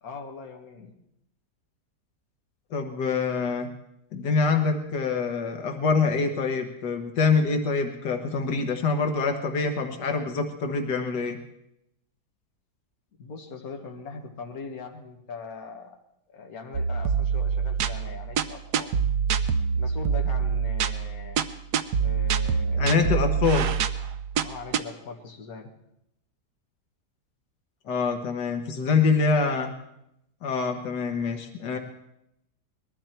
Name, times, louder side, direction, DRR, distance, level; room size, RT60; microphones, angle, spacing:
voice 1, 0.0-1.0 13.2-16.0 16.3-18.9 19.7-21.4 22.0-22.9 23.5-23.8 24.4-25.7, left 4 dB, 60° left, 2 dB, 2.0 m, -41 dB
voice 2, 2.7-3.7 4.1-11.4 22.8-23.7 27.9-29.7 30.4-31.8, left 4 dB, 85° left, 5 dB, 1.9 m, -25 dB
sound 1, 16.7-24.8, right 6 dB, 75° right, 1.3 m, -26 dB
20.5 x 13.5 x 4.5 m, 0.81 s
omnidirectional pair, 1.8 m